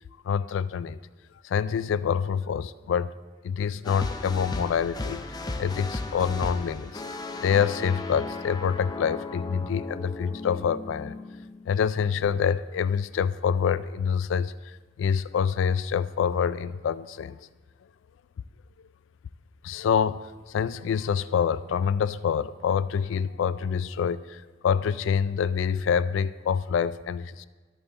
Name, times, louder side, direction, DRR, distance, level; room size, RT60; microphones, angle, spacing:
voice 1, 0.2-1.0 1.4-3.1 3.4-5.2 5.6-7.0 7.4-11.2 11.7-17.5 19.6-27.4, left 7 dB, 75° left, 16 dB, 0.3 m, -26 dB
sound 1, 3.8-12.0, left 2 dB, 20° left, 0.5 m, -36 dB
13.0 x 5.5 x 3.9 m, 1.3 s
head